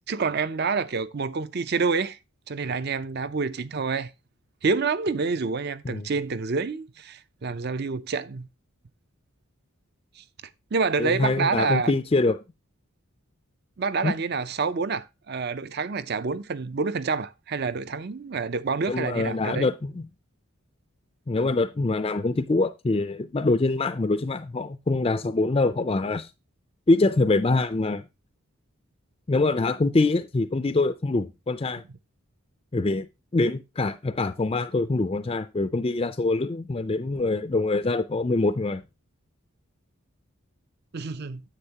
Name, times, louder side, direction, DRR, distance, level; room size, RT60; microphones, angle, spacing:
voice 1, 0.1-2.2 2.5-4.1 4.6-8.5 10.2-10.3 10.7-11.9 13.8-19.7 40.9-41.4, right 4 dB, 45° right, 0.5 m, -27 dB
voice 2, 11.0-12.4 14.0-14.1 18.9-20.1 21.3-26.3 26.9-28.0 29.3-31.8 32.7-33.1 33.3-38.8, left 2 dB, 25° left, 0.4 m, -24 dB
9.8 x 8.0 x 2.8 m
head